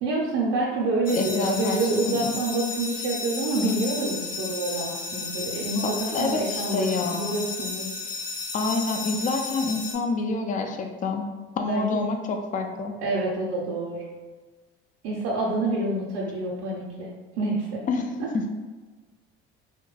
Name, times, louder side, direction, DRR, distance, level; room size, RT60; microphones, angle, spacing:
voice 1, 0.0-7.9 11.7-12.0 13.0-14.0 15.0-17.8 18.2-18.3, right 2 dB, 65° right, -4 dB, 0.6 m, -27 dB
sound 1, 1.1-9.9, left 4 dB, 90° left, 0.7 m, -33 dB
voice 2, 1.1-2.3 5.8-7.4 8.5-11.3 11.6-12.9 17.9-18.1 18.3-18.5, left 3 dB, 25° left, 4 dB, 0.4 m, -27 dB
2.8 x 2.1 x 3.1 m, 1.3 s
hypercardioid pair, 65°, 31 cm